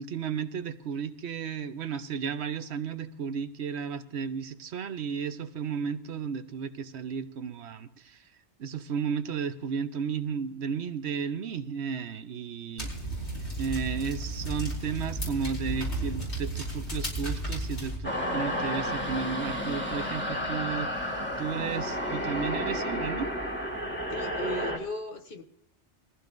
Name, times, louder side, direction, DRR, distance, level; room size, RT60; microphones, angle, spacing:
voice 1, 0.0-8.3 8.6-12.9 13.6-23.3, right 6 dB, 70° right, 11 dB, 1.0 m, -33 dB
sound 1, 12.8-18.0, right 1 dB, 65° left, 5.1 m, -33 dB
sound 2, 18.0-24.8, equal, 10° left, 1.9 m, -31 dB
voice 2, 24.1-25.4, left 1 dB, 50° left, 4 dB, 1.4 m, -36 dB
21.0 x 15.0 x 2.6 m, 0.76 s
omnidirectional pair, 1.2 m